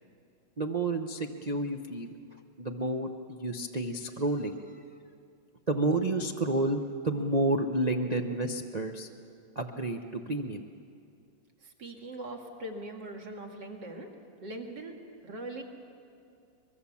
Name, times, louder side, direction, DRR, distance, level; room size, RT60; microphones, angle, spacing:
voice 1, 0.6-2.1 2.6-4.8 5.7-9.1 9.6-10.6, right 2 dB, 80° right, 2 dB, 0.3 m, -30 dB
voice 2, 11.6-14.1 14.4-14.9 15.2-15.6, right 1 dB, 55° right, 2 dB, 2.5 m, -41 dB
23.5 x 22.0 x 7.2 m, 2.5 s
omnidirectional pair, 2.3 m